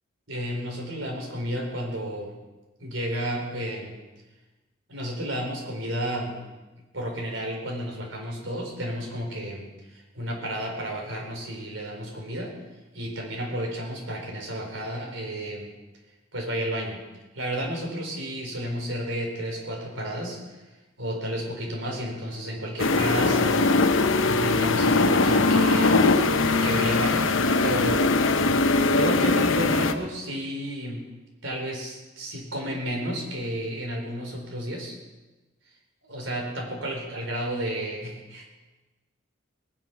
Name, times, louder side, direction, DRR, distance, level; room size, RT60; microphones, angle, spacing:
voice 1, 0.3-2.3 2.8-4.0 4.9-6.4 6.9-12.5 12.9-15.7 16.3-17.0 17.3-20.6 21.0-26.1 26.6-27.3 27.6-28.2 28.9-31.0 31.4-34.9 36.0-38.4, equal, 80° right, 0 dB, 4.5 m, -32 dB
sound 1, 22.8-29.9, left 3 dB, 85° left, 0.9 m, -21 dB
20.0 x 10.0 x 6.1 m, 1.2 s
head